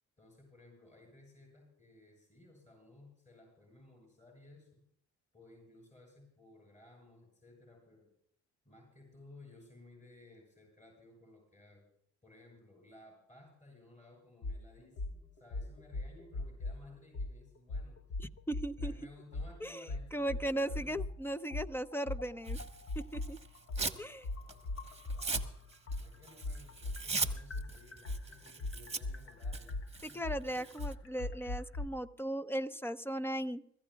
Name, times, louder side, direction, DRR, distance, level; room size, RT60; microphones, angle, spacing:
voice 1, 0.2-4.8 5.3-8.1 8.6-11.8 12.2-18.2 18.7-21.1 24.1-29.8 30.1-30.2 30.5-30.8, left 2 dB, 25° left, 0 dB, 7.8 m, -58 dB
sound 1, 14.4-14.6 15.0-15.1 15.5-16.8 17.1-17.3 17.7-19.0 19.3-19.5 19.9-21.1 21.5-25.5 25.9-31.9, left 2 dB, 45° left, 1.2 m, -39 dB
voice 2, 18.2-18.9 19.6-19.9 20.1-22.6 23.1-23.4 24.0-24.3 30.0-33.6, right 1 dB, 5° left, 10 dB, 0.7 m, -37 dB
Tearing, 22.5-24.0 24.4-30.9, right 4 dB, 20° right, 1.3 m, -40 dB
25.5 x 15.0 x 2.3 m, 0.69 s
cardioid pair, 90°, 30 cm